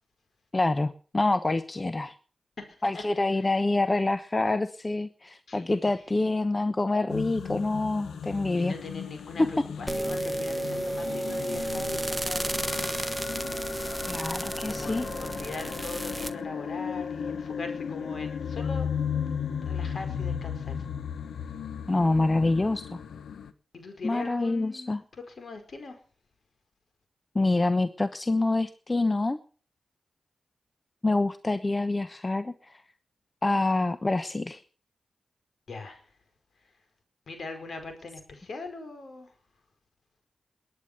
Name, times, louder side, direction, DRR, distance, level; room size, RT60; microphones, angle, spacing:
voice 1, 0.5-2.1 2.8-8.7 9.4-9.5 14.1-15.1 21.9-23.0 24.0-25.0 27.3-29.4 31.0-32.8 33.4-34.6, left 2 dB, 30° left, 11 dB, 1.1 m, -26 dB
voice 2, 2.6-3.0 3.4-3.5 5.5-6.0 8.5-13.0 14.6-18.9 19.7-20.7 23.7-26.0 35.7-36.0 37.3-39.3, left 3 dB, 65° left, 7 dB, 5.0 m, -41 dB
sound 1, 7.1-23.5, left 7 dB, 90° left, 1.2 m, -35 dB
sound 2, 9.9-16.3, right 1 dB, 5° right, 1.7 m, -32 dB
21.0 x 9.6 x 6.8 m, 0.41 s
cardioid pair, 55°, 0 cm